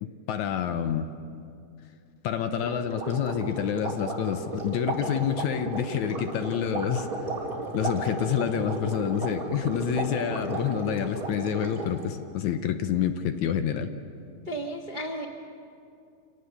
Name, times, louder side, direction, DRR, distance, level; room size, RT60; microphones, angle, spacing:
voice 1, 0.0-1.1 2.2-7.1 7.7-13.9, left 9 dB, 75° left, 8 dB, 2.1 m, -28 dB
sound 1, 2.6-12.0, right 2 dB, 25° right, 4.1 m, -34 dB
voice 2, 14.5-15.3, right 1 dB, 65° right, 1 dB, 0.4 m, -33 dB
26.5 x 18.0 x 7.1 m, 2.5 s
omnidirectional pair, 3.7 m